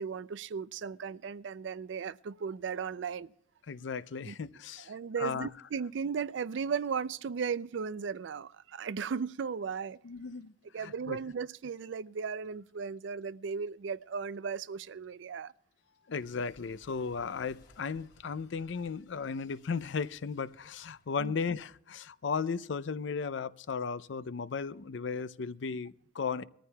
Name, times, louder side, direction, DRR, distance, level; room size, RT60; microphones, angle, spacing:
voice 1, 0.0-3.3 4.3-4.4 4.9-10.0 10.7-15.5 21.2-21.3, right 6 dB, 75° right, 0.4 m, -36 dB
voice 2, 3.7-5.5 10.0-10.5 10.8-11.2 16.1-26.4, left 5 dB, 75° left, 0.5 m, -36 dB
Clock, 6.4-9.4 9.7-12.7 13.0-21.8, left 1 dB, 55° left, 3.3 m, -63 dB
22.0 x 14.0 x 2.3 m
head